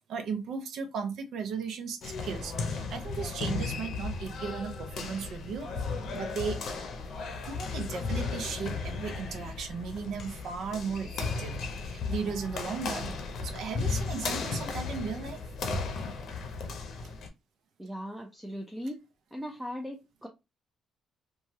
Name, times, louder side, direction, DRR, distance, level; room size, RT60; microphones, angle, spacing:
voice 1, 0.1-5.7 6.1-6.6 7.5-11.6 11.9-13.2 13.4-15.4, right 5 dB, 75° right, 7 dB, 0.5 m, -36 dB
sound 1, 2.0-17.3, left 4 dB, 65° left, 0.6 m, -35 dB
voice 2, 17.8-19.0 19.3-20.3, equal, 10° right, 2 dB, 0.5 m, -38 dB
2.9 x 2.3 x 2.7 m, 0.25 s
cardioid pair, 90°, 0 cm